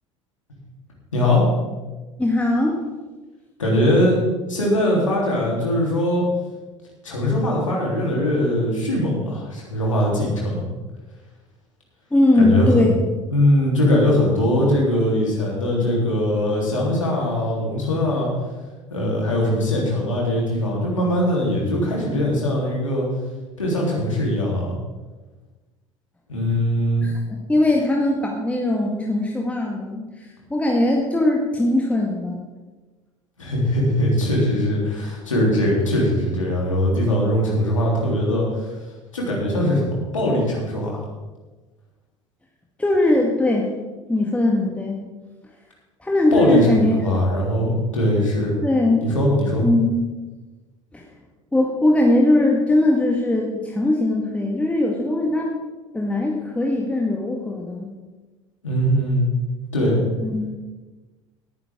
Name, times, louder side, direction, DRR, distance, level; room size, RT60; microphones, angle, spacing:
voice 1, 1.1-1.4 3.6-4.2 4.5-6.2 7.0-10.6 12.4-12.9 13.3-18.3 18.9-23.1 23.6-24.7 26.3-27.0 33.4-38.7 39.1-41.0 46.3-48.5 49.0-49.6 58.6-59.3 59.7-60.0, left 1 dB, 80° left, -3 dB, 3.6 m, -21 dB
voice 2, 2.2-2.8 12.1-12.9 27.0-27.1 27.5-32.4 42.8-43.8 44.1-45.0 46.0-47.0 48.6-49.1 49.6-50.0 50.9-51.1 51.5-55.5 55.9-57.9 60.2-60.5, left 1 dB, 10° left, -1 dB, 1.8 m, -20 dB
18.0 x 9.7 x 3.7 m, 1.2 s
figure-of-eight pair, 70°, 16 cm